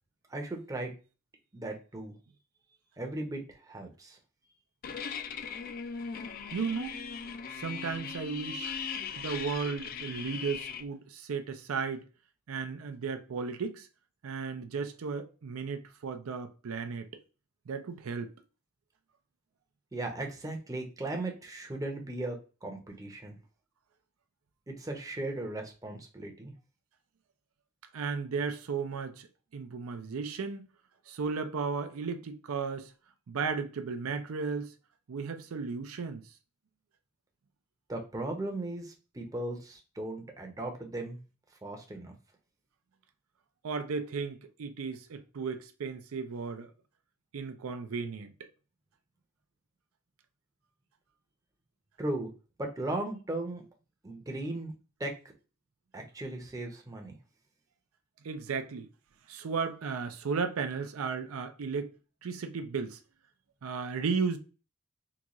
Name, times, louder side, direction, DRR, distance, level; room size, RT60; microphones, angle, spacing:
voice 1, 0.3-0.9 1.5-2.1 3.0-4.2 19.9-23.4 24.7-26.5 37.9-41.2 41.6-42.1 52.0-52.3 52.6-53.6 54.0-54.7 55.0-55.1 55.9-57.2, right 2 dB, 15° right, 0.6 m, -37 dB
sound 1, 4.8-10.8, left 6 dB, 45° left, 0.3 m, -39 dB
voice 2, 6.5-7.0 7.5-8.7 9.2-12.1 12.5-13.9 14.2-17.1 17.7-18.3 27.9-29.3 29.5-30.6 31.1-32.9 33.3-34.7 35.1-36.2 43.6-46.7 47.3-48.5 58.2-58.9 59.3-61.9 62.2-63.0 63.6-64.4, right 5 dB, 85° right, 0.5 m, -35 dB
3.7 x 2.3 x 2.9 m
head